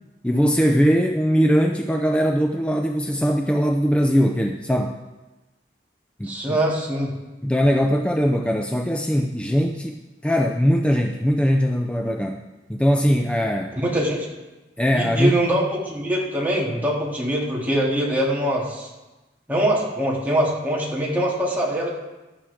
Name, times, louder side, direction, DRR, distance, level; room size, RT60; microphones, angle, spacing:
voice 1, 0.2-5.0 6.2-6.6 7.4-12.4 12.7-13.8 14.8-15.4, equal, 5° left, 3 dB, 0.5 m, -21 dB
voice 2, 6.3-7.1 13.8-14.3 14.9-18.9 19.5-22.0, right 1 dB, 10° right, -5 dB, 2.6 m, -23 dB
15.0 x 11.0 x 3.6 m, 1.1 s
head